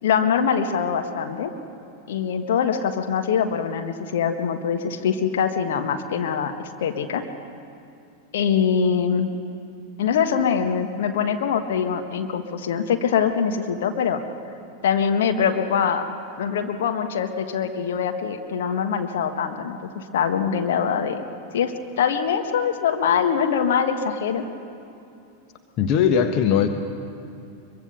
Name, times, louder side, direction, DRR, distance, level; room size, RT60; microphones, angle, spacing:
voice 1, 0.0-1.5 2.1-7.2 8.3-9.3 10.0-14.2 14.8-16.1 16.4-21.2 21.5-24.4, left 7 dB, 55° left, 5 dB, 1.5 m, -23 dB
voice 2, 25.8-26.7, left 8 dB, 40° left, 6 dB, 1.3 m, -19 dB
23.5 x 23.5 x 6.9 m, 2.6 s
figure-of-eight pair, 90°, 0 cm